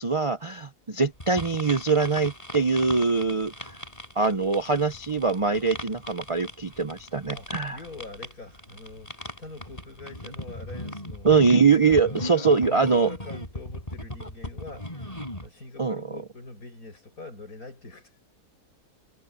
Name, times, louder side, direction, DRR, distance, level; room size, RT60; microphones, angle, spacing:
voice 1, 0.0-3.8 4.2-7.8 11.2-13.1 15.8-16.0, right 4 dB, 55° right, 0.3 m, -23 dB
sound 1, 1.2-15.5, left 1 dB, 20° left, 5.0 m, -39 dB
voice 2, 7.3-9.1 9.4-11.3 11.9-15.0 15.4-18.1, left 2 dB, 60° left, 8.5 m, -43 dB
omnidirectional pair, 1.7 m